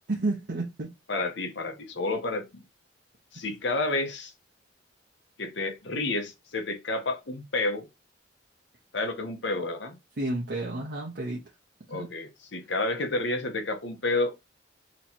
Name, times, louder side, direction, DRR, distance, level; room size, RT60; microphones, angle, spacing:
voice 1, 0.1-0.9 10.2-11.4 11.9-12.1, right 2 dB, 55° right, 0.9 m, -31 dB
voice 2, 1.1-2.6 3.3-4.3 5.4-7.9 8.9-10.0 11.9-14.3, left 2 dB, 70° left, 0.9 m, -30 dB
3.1 x 2.8 x 4.3 m
head